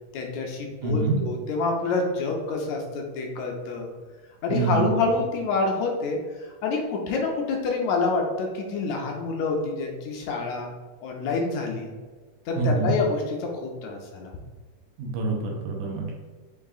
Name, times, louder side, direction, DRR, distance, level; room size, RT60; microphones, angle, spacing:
voice 1, 0.1-3.9 4.4-10.7 11.0-11.9 12.5-14.3, left 3 dB, 80° left, 1 dB, 1.7 m, -27 dB
voice 2, 0.8-1.2 4.5-4.9 12.6-13.0 15.0-16.1, right 3 dB, 90° right, -1 dB, 2.3 m, -25 dB
5.4 x 3.5 x 2.4 m, 1.4 s
omnidirectional pair, 3.5 m